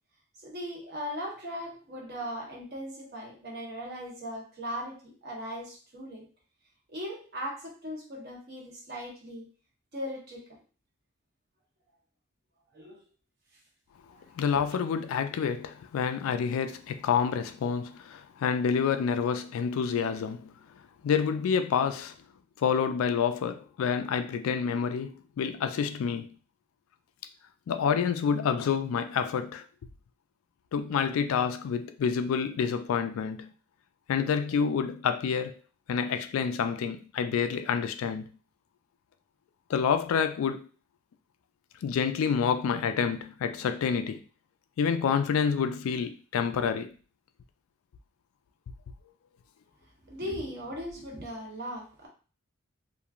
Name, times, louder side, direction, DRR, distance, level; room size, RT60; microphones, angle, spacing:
voice 1, 0.4-6.3 6.9-9.5 9.9-10.6 12.7-13.0 14.2-14.3 50.0-52.1, equal, 50° right, 1.0 m, -38 dB
voice 2, 14.3-20.5 21.0-22.1 22.6-26.3 27.7-29.6 30.7-33.5 34.1-35.6 35.9-38.3 39.7-40.7 41.8-44.2 44.8-46.9, left 6 dB, 80° left, 0.3 m, -28 dB
2.9 x 2.5 x 2.4 m
head